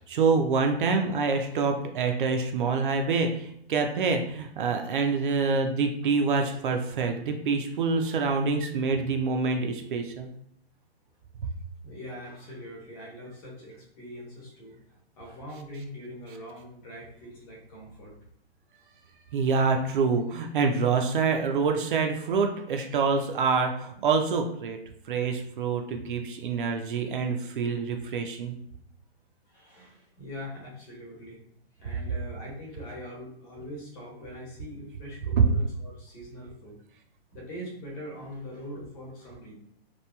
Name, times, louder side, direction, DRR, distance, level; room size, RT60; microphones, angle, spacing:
voice 1, 0.0-10.3 19.3-24.8 25.1-28.5 35.4-35.5, right 4 dB, 55° right, 4 dB, 0.4 m, -26 dB
voice 2, 11.8-18.1 20.9-21.1 29.5-31.4 31.8-36.7 37.3-39.5, equal, 35° left, -3 dB, 1.1 m, -42 dB
2.9 x 2.3 x 2.2 m, 0.69 s
hypercardioid pair, 140°, 32 cm